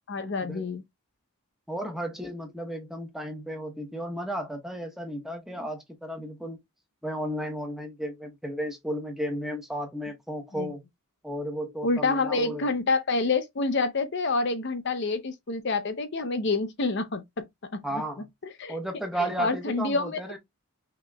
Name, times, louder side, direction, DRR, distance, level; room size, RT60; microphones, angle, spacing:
voice 1, 0.1-0.8 10.5-10.7 11.8-17.4 17.7-18.0 18.6-18.8 19.2-20.2, left 3 dB, 50° left, 0.6 m, -27 dB
voice 2, 1.7-6.6 7.0-10.8 11.2-12.7 17.8-18.2 18.7-20.4, right 1 dB, ahead, 0.9 m, -33 dB
5.8 x 2.9 x 2.3 m
head